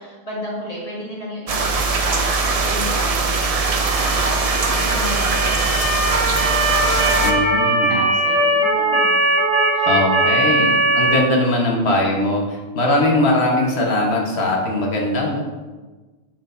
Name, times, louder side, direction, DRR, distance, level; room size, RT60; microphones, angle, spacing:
voice 1, 0.0-7.2 7.9-9.4 9.7-10.0 10.3-11.0, left 1 dB, 35° left, -5 dB, 1.6 m, -34 dB
sound 1, 1.5-7.3, right 4 dB, 45° right, 0.5 m, -20 dB
Motor vehicle (road) / Siren, 3.7-11.2, right 1 dB, 10° right, 2.1 m, -20 dB
voice 2, 7.2-8.0 9.8-15.4, left 1 dB, 75° left, -1 dB, 1.4 m, -20 dB
7.8 x 5.9 x 2.6 m, 1.3 s
omnidirectional pair, 1.1 m